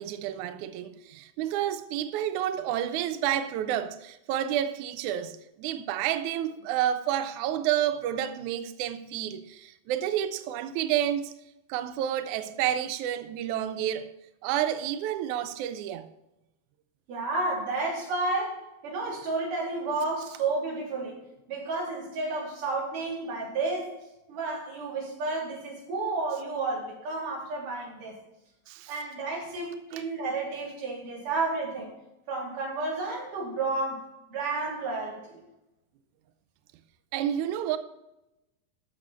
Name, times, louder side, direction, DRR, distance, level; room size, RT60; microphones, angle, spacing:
voice 1, 0.0-11.3 11.7-14.1 14.4-16.1 28.7-28.9 29.9-30.0 37.1-37.8, right 11 dB, 80° right, 1.7 m, -30 dB
voice 2, 17.1-21.2 21.5-23.9 24.3-28.2 28.9-31.9 32.3-34.0 34.3-35.4, right 3 dB, 60° right, 4.8 m, -31 dB
14.0 x 6.4 x 4.3 m
omnidirectional pair, 4.2 m